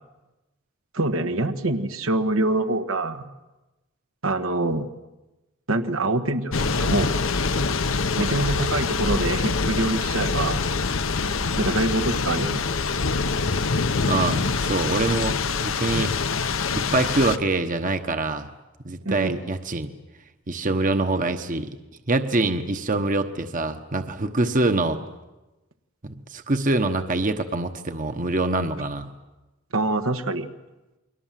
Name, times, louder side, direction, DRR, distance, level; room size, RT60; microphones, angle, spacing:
voice 1, 0.9-3.3 4.2-4.9 5.7-7.1 8.1-10.6 11.6-12.6 19.0-19.4 29.7-30.5, right 2 dB, 80° right, 6 dB, 1.4 m, -25 dB
Thunder / Rain, 6.5-17.4, left 4 dB, 75° left, 1.0 m, -25 dB
voice 2, 14.1-16.1 16.7-18.5 18.8-19.9 20.5-21.7 22.1-25.0 26.0-29.1, right 2 dB, 40° right, 8 dB, 1.1 m, -25 dB
29.5 x 22.5 x 7.5 m, 1.1 s
head